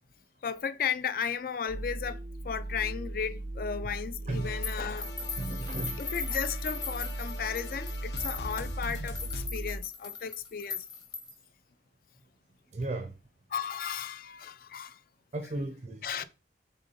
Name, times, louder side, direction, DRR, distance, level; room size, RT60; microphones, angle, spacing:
voice 1, 0.4-5.3 6.0-10.8 13.5-15.0 16.0-16.2, left 7 dB, 50° left, 0.3 m, -35 dB
sound 1, 1.7-9.8, right 1 dB, 85° right, 0.6 m, -38 dB
sound 2, 4.3-9.5, left 3 dB, 75° left, 0.7 m, -45 dB
sound 3, 4.6-11.5, left 5 dB, 25° left, 0.8 m, -39 dB
voice 2, 5.4-6.0 12.7-13.1 15.3-16.2, right 2 dB, 40° right, 0.4 m, -35 dB
4.0 x 3.4 x 3.8 m
head